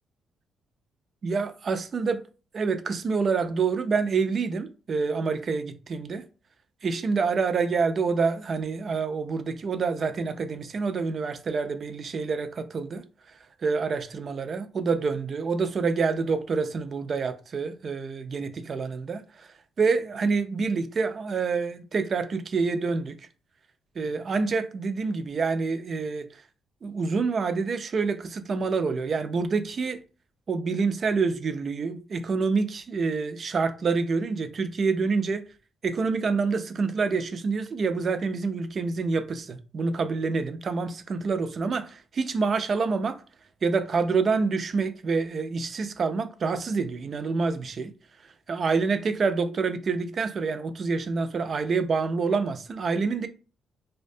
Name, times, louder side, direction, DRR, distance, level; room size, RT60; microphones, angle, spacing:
voice 1, 1.2-2.2 2.5-6.2 6.8-13.0 13.6-23.2 24.0-26.3 26.8-30.0 30.5-35.4 35.8-43.2 43.6-47.9 48.5-53.3, right 4 dB, 45° right, 0.3 m, -27 dB
2.4 x 2.2 x 2.6 m
cardioid pair, 90°, 0 cm